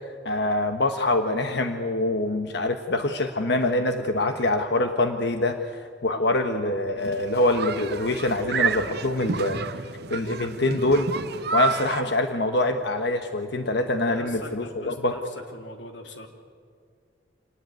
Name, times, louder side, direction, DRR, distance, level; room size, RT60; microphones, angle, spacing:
voice 1, 0.2-9.6 10.1-11.1 11.5-15.2, left 2 dB, 65° left, 6 dB, 1.3 m, -25 dB
sound 1, 7.0-12.0, right 5 dB, 60° right, 1.0 m, -30 dB
voice 2, 13.9-15.2 15.5-16.3, left 1 dB, 85° left, 4 dB, 3.0 m, -40 dB
26.5 x 19.0 x 9.2 m, 2.1 s
head